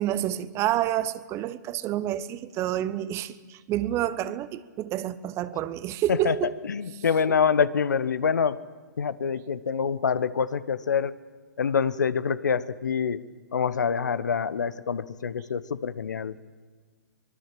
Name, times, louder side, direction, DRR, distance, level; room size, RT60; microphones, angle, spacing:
voice 1, 0.0-6.5 7.0-7.1, right 12 dB, 30° right, 1.0 m, -29 dB
voice 2, 6.7-8.6 9.0-11.2 11.6-13.2 13.5-16.4, left 6 dB, 75° left, 1.1 m, -26 dB
24.0 x 22.5 x 7.7 m
figure-of-eight pair, 120°, 10 cm